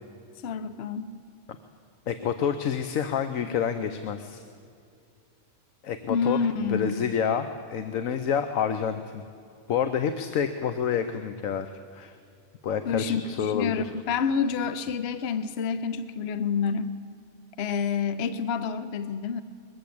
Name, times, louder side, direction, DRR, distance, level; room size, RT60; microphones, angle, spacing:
voice 1, 0.4-1.1 6.1-7.0 12.9-16.9 17.6-19.4, left 6 dB, 55° left, 12 dB, 1.0 m, -28 dB
voice 2, 2.1-4.4 5.8-6.4 6.7-9.2 9.7-12.1 12.6-13.9, left 7 dB, 75° left, 9 dB, 1.2 m, -28 dB
21.0 x 14.5 x 8.6 m, 2.4 s
omnidirectional pair, 1.4 m